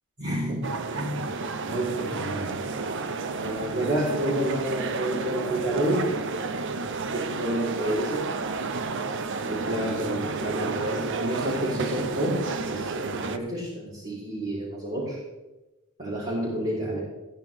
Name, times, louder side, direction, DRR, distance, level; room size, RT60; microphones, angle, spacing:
voice 1, 0.2-0.6 0.9-1.3 1.6-8.3 9.4-15.2 16.0-17.0, right 1 dB, 40° right, -10 dB, 3.8 m, -30 dB
sound 1, 0.6-13.4, right 4 dB, 55° right, 0.6 m, -31 dB
16.0 x 9.6 x 3.5 m, 1.1 s
head